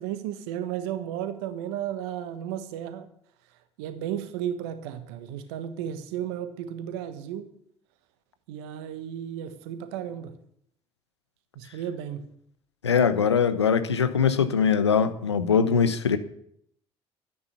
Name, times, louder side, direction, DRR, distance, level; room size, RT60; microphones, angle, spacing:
voice 1, 0.0-3.1 3.8-7.5 8.5-10.4 11.5-12.3, right 10 dB, 70° right, 1.4 m, -34 dB
voice 2, 12.8-16.2, left 6 dB, 85° left, 0.9 m, -22 dB
12.5 x 9.7 x 6.9 m
figure-of-eight pair, 50°, 14 cm